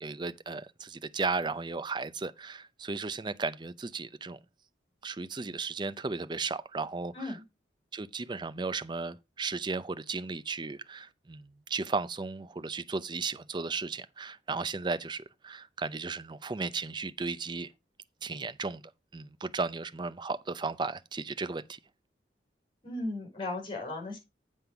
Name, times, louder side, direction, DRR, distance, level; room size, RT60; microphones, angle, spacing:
voice 1, 0.0-4.4 5.0-7.4 7.9-17.7 18.2-18.8 19.1-21.8, right 4 dB, 25° right, 0.5 m, -35 dB
voice 2, 22.8-24.2, left 2 dB, 30° left, 4.7 m, -36 dB
7.8 x 5.4 x 5.7 m
head